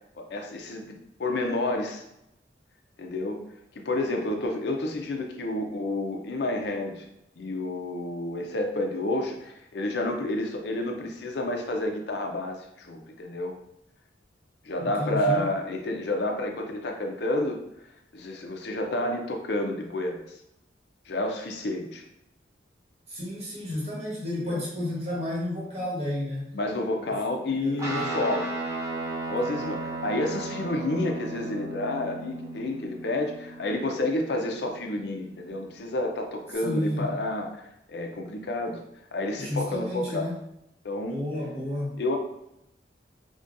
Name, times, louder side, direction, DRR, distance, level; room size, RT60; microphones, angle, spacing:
voice 1, 0.2-2.0 3.0-3.4 3.7-7.0 7.4-13.5 14.6-17.6 18.1-20.4 21.1-22.0 24.3-24.6 26.5-28.5 29.3-38.8 39.1-40.3 40.8-41.2 42.0-42.2, left 1 dB, 60° left, 3 dB, 0.5 m, -30 dB
voice 2, 14.8-15.4 23.1-26.5 27.1-27.2 27.6-28.2 36.6-37.1 39.4-40.3 41.0-42.0, left 1 dB, 35° right, -6 dB, 1.1 m, -31 dB
Guitar, 27.8-36.5, right 2 dB, 15° right, 0.6 m, -36 dB
4.9 x 2.2 x 2.5 m, 0.83 s
head